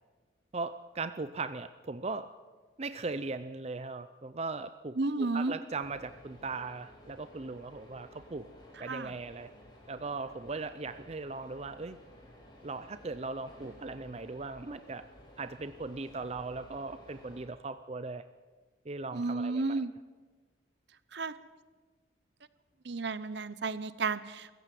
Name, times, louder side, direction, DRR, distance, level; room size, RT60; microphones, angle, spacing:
voice 1, 0.5-2.3 2.8-8.5 8.8-9.5 9.9-12.0 12.6-15.0 15.4-18.2 18.9-19.8, right 3 dB, 35° right, 12 dB, 0.5 m, -39 dB
voice 2, 5.0-5.6 8.8-9.2 19.1-19.9 21.1-21.3 22.8-24.5, right 3 dB, 60° right, 15 dB, 0.8 m, -32 dB
sound 1, 5.8-17.5, equal, 25° left, 5.2 m, -55 dB
23.5 x 15.0 x 7.7 m, 1.4 s
head